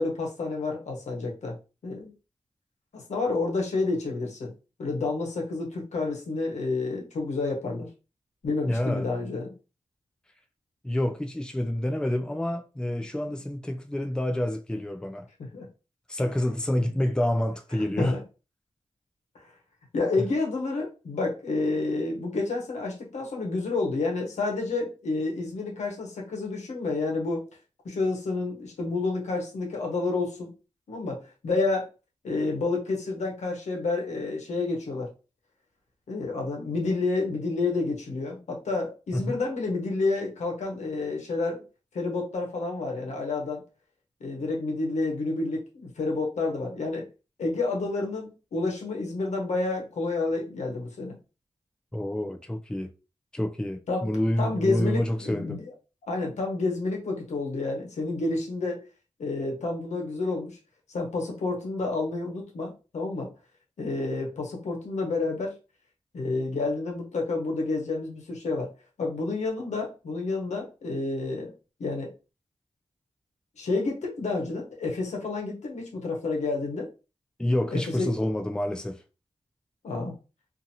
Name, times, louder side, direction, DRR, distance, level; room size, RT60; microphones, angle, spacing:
voice 1, 0.0-1.6 1.8-2.1 2.9-4.5 4.8-7.9 8.4-9.5 15.4-15.7 18.0-18.2 19.9-27.4 27.8-30.5 30.9-31.9 32.2-35.1 36.1-41.6 41.9-43.6 44.2-47.1 47.4-51.1 53.9-54.1 54.4-55.7 56.1-58.8 59.2-60.6 60.9-63.3 63.8-65.5 66.1-68.7 69.0-71.5 71.8-72.1 73.6-76.9 77.7-78.2 79.8-80.1, left 3 dB, 85° left, 0.9 m, -29 dB
voice 2, 8.7-9.1 10.8-15.3 16.1-18.2 20.2-20.3 39.1-39.4 51.9-52.9 53.3-55.6 77.4-79.0, left 1 dB, 5° left, 0.4 m, -28 dB
2.6 x 2.6 x 2.8 m
cardioid pair, 45°, 12 cm